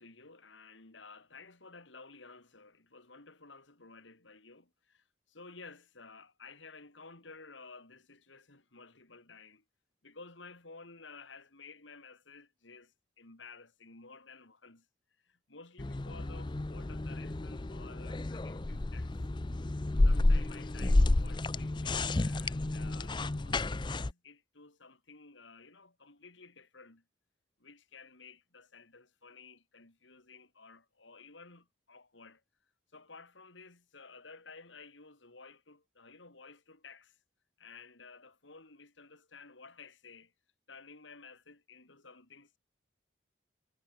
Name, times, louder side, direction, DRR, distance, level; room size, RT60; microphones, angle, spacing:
voice 1, 0.0-9.6 10.0-14.9 15.2-19.1 20.0-27.0 27.6-32.4 32.9-37.2 37.6-40.3 40.7-42.6, left 4 dB, 75° left, 3.3 m, -54 dB
sound 1, 15.8-24.1, left 2 dB, 25° left, 0.5 m, -30 dB
head